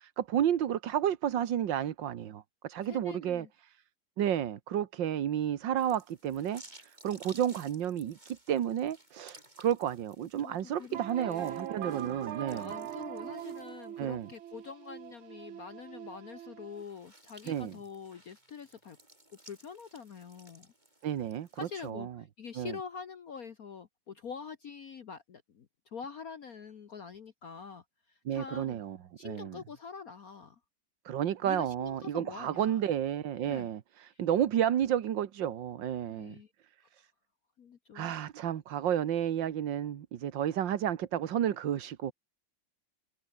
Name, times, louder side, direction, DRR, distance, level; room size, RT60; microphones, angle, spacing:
voice 1, 0.0-3.8 4.2-12.7 14.0-14.3 17.5-17.7 21.0-22.1 22.6-22.8 28.3-29.0 29.2-29.6 31.1-36.4 37.0-37.1 37.9-42.1, right 10 dB, 65° right, 1.8 m, -31 dB
voice 2, 2.8-3.5 10.4-19.0 19.4-20.7 21.5-28.8 29.2-30.6 31.4-32.8 33.5-33.7 34.1-34.2 36.1-36.5 37.6-38.1, left 6 dB, 50° left, 1.5 m, -45 dB
sound 1, 5.8-14.4 14.8-14.9 16.6-21.9, right 1 dB, 20° right, 6.1 m, -58 dB
sound 2, 10.9-16.8, right 10 dB, 85° right, 2.0 m, -42 dB
omnidirectional pair, 2.2 m